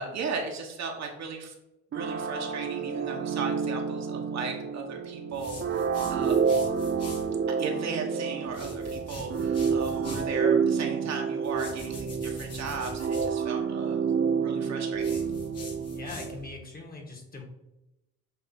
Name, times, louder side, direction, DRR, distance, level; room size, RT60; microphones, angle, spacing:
voice 1, 0.0-1.5 1.9-5.8 6.1-6.4 7.5-14.1 14.4-15.2, right 4 dB, 60° right, 2 dB, 1.3 m, -36 dB
sound 1, 1.9-16.5, right 6 dB, 40° right, 0.6 m, -29 dB
sound 2, 5.3-7.3 8.4-10.3 11.4-13.3 14.9-16.5, left 2 dB, 55° left, 1.9 m, -43 dB
voice 2, 15.9-17.4, left 2 dB, 30° left, 2 dB, 1.7 m, -41 dB
7.9 x 2.8 x 4.3 m, 0.93 s
cardioid pair, 90°, 30 cm